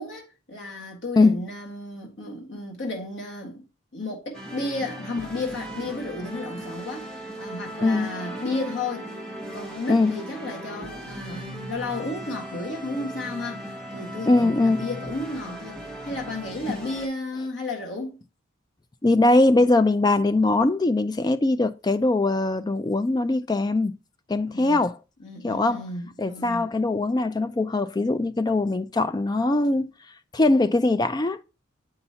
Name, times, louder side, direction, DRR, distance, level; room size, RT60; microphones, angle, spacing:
voice 1, 0.0-3.6 3.9-9.1 9.5-18.2 24.5-24.8 25.2-26.7, left 2 dB, 65° left, 1.6 m, -33 dB
sound 1, 4.3-17.1, right 1 dB, 5° left, 1.0 m, -38 dB
voice 2, 14.3-14.9 16.7-16.8 19.0-23.9 24.3-25.0 25.4-25.8 26.2-29.9 30.3-31.4, left 2 dB, 20° left, 0.3 m, -21 dB
7.9 x 5.5 x 2.8 m
head